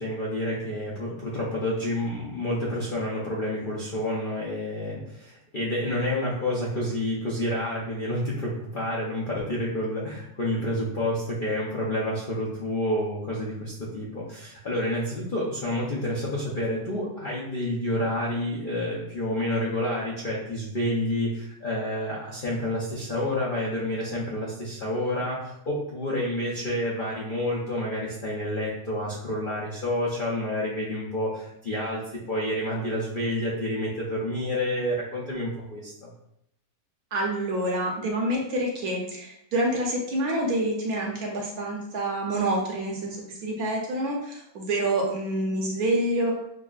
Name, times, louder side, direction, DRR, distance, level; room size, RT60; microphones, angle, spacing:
voice 1, 0.0-32.0 32.3-36.1, left 1 dB, 55° left, -6 dB, 0.5 m, -29 dB
voice 2, 37.1-43.2 43.4-46.3, right 1 dB, 65° right, -1 dB, 1.2 m, -27 dB
6.0 x 2.0 x 2.4 m, 0.77 s
omnidirectional pair, 1.8 m